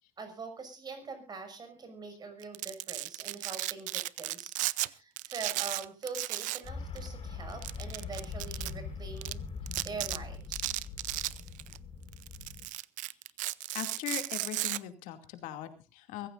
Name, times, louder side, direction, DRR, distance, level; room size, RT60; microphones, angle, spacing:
voice 1, 0.2-9.4 9.8-10.7, right 4 dB, 30° right, 8 dB, 6.1 m, -44 dB
Domestic sounds home sounds, 2.4-4.9 5.2-6.7 7.0-7.1 7.6-8.7 9.2-9.3 9.7-10.2 10.5-11.8 12.1-14.8, right 18 dB, 75° right, 0.6 m, -35 dB
sound 1, 6.6-12.6, left 4 dB, 40° left, 6.1 m, -42 dB
voice 2, 13.7-16.3, left 12 dB, 85° left, 7 dB, 2.5 m, -40 dB
24.0 x 15.0 x 2.6 m, 0.31 s
cardioid pair, 125°, 13 cm